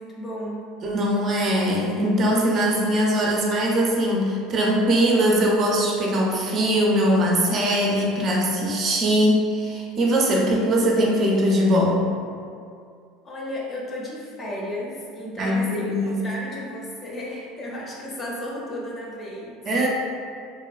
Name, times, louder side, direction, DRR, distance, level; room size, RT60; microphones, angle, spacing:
voice 1, 0.0-0.7 13.2-19.6, left 1 dB, 35° left, -3 dB, 0.6 m, -34 dB
voice 2, 0.8-12.1 15.4-16.2 19.7-19.9, equal, 45° right, -2 dB, 0.4 m, -21 dB
2.5 x 2.2 x 2.3 m, 2.3 s
supercardioid pair, 95°, 0 cm